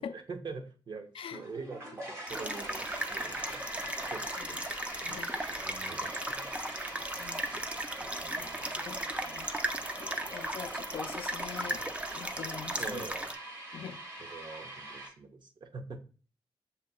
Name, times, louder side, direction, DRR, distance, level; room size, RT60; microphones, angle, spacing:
voice 1, 0.0-5.2 5.5-6.6 7.0-7.1 8.0-9.1 12.8-13.3 13.7-13.8 14.2-16.0, right 4 dB, 55° right, 0.7 m, -45 dB
sound 1, 1.3-15.1, right 1 dB, 30° right, 1.2 m, -43 dB
sound 2, 2.3-13.3, right 1 dB, 15° right, 0.4 m, -37 dB
voice 2, 5.0-5.4 7.2-7.6 8.4-9.5 10.0-11.8 12.1-13.1 13.7-14.0 14.2-14.4, left 7 dB, 80° left, 0.4 m, -44 dB
7.2 x 2.7 x 2.2 m
wide cardioid pair, 120°, 9 cm